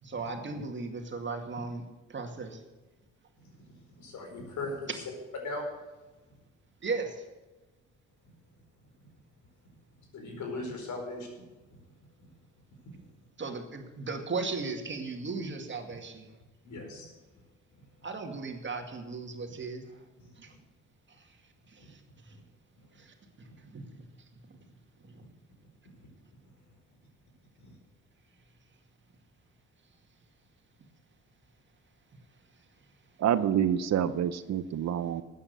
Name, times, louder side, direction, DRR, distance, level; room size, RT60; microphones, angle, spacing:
voice 1, 0.0-2.6 6.8-7.2 13.4-16.3 16.9-17.0 18.0-20.0 20.4-20.6 21.2-21.4 21.7-22.4 23.0-24.0 24.5-24.6 25.0-25.2, right 4 dB, 40° right, 4 dB, 2.2 m, -37 dB
voice 2, 3.4-5.0 5.4-5.6 10.1-11.3 12.9-13.0 16.6-17.1 27.6-27.7, left 2 dB, 70° left, 2 dB, 4.5 m, -39 dB
voice 3, 33.2-35.2, right 9 dB, 60° right, 14 dB, 0.8 m, -27 dB
13.0 x 8.8 x 6.8 m, 1.2 s
cardioid pair, 90°, 30 cm